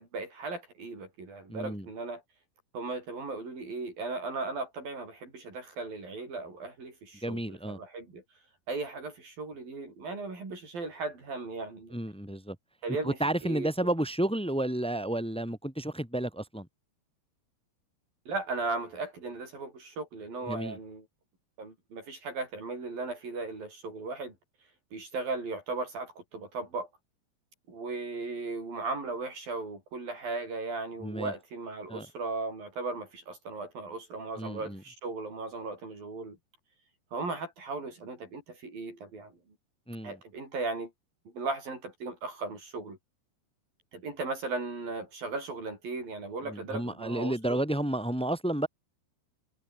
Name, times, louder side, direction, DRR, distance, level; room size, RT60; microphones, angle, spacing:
voice 1, 0.0-2.2 2.7-8.2 8.7-12.0 12.8-13.7 18.3-21.1 21.6-24.3 24.9-26.9 27.7-36.4 37.1-39.3 40.0-40.9 41.3-43.0 43.9-47.6, right 3 dB, 55° right, 9.1 m, -37 dB
voice 2, 1.5-1.9 7.2-7.8 11.9-12.6 13.0-16.7 20.5-20.8 31.0-31.3 31.9-32.1 34.4-34.8 39.9-40.2 46.5-48.7, right 1 dB, ahead, 7.2 m, -31 dB
omnidirectional pair, 5.0 m